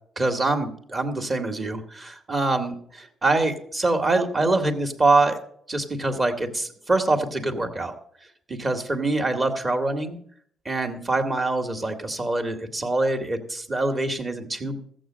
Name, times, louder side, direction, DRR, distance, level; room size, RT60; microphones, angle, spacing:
voice 1, 0.2-5.4 5.7-8.0 8.5-10.2 10.7-14.8, right 2 dB, 30° right, 6 dB, 1.9 m, -24 dB
14.0 x 7.8 x 6.3 m, 0.64 s
cardioid pair, 90°, 0 cm